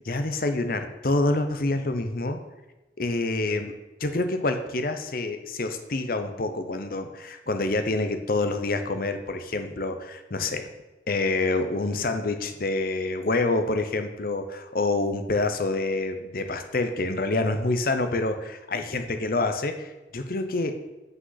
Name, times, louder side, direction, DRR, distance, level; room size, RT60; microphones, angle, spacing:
voice 1, 0.1-2.4 3.0-3.7 4.0-10.7 11.1-20.8, left 2 dB, 55° left, 8 dB, 0.8 m, -27 dB
8.4 x 5.5 x 5.8 m, 1.1 s
head